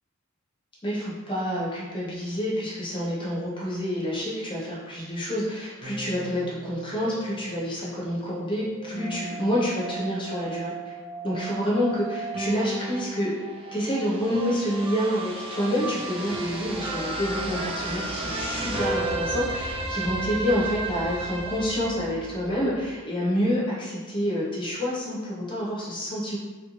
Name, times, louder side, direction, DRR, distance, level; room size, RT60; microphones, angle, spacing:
voice 1, 0.8-11.0 11.2-13.3 13.7-26.4, equal, 25° left, -6 dB, 0.7 m, -28 dB
sound 1, 5.8-22.9, right 2 dB, 25° right, 0.4 m, -34 dB
3.4 x 2.5 x 3.0 m, 1.3 s
head